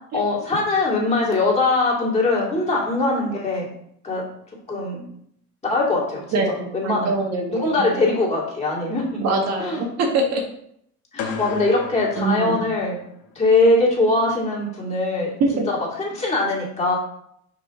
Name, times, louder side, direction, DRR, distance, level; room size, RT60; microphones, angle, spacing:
voice 1, 0.1-3.7 4.0-4.2 4.7-5.0 5.6-6.4 6.7-7.1 7.6-9.2 9.6-9.9 11.1-13.0 13.3-15.3 16.0-17.0, left 2 dB, 20° left, -4 dB, 2.5 m, -21 dB
voice 2, 6.3-8.0 9.2-10.4 12.2-12.5 15.4-15.6, right 3 dB, 60° right, 1 dB, 1.5 m, -23 dB
sound 1, 11.2-13.3, left 5 dB, 80° left, 1.2 m, -34 dB
6.2 x 4.9 x 3.7 m, 0.70 s
cardioid pair, 130°, 30 cm